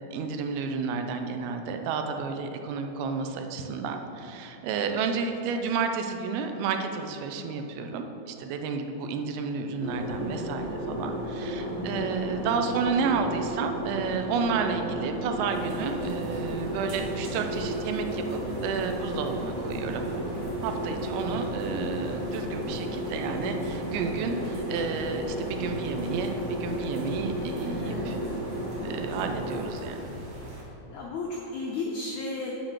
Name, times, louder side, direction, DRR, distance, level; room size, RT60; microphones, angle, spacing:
voice 1, 0.1-20.1 20.6-28.2 28.8-30.1, right 5 dB, 85° right, 6 dB, 2.5 m, -31 dB
sound 1, 9.8-29.7, right 1 dB, 30° left, 0.6 m, -33 dB
voice 2, 11.6-12.0 27.6-28.1 30.9-32.5, left 3 dB, 85° left, -2 dB, 1.6 m, -34 dB
sound 2, 15.5-30.6, right 1 dB, 50° right, 1.5 m, -43 dB
7.4 x 5.0 x 7.3 m, 2.9 s
omnidirectional pair, 4.4 m